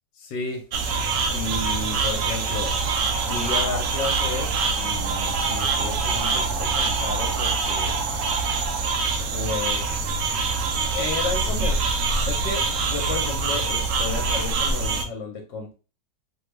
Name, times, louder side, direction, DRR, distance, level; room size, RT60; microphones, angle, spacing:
voice 1, 0.2-0.6 1.3-2.7 3.1-8.0 9.3-10.2 10.9-11.8 12.3-15.7, left 4 dB, 80° left, 1 dB, 1.3 m, -32 dB
sound 1, 0.7-15.0, right 4 dB, 80° right, 0.7 m, -24 dB
3.1 x 2.3 x 3.1 m, 0.33 s
omnidirectional pair, 1.9 m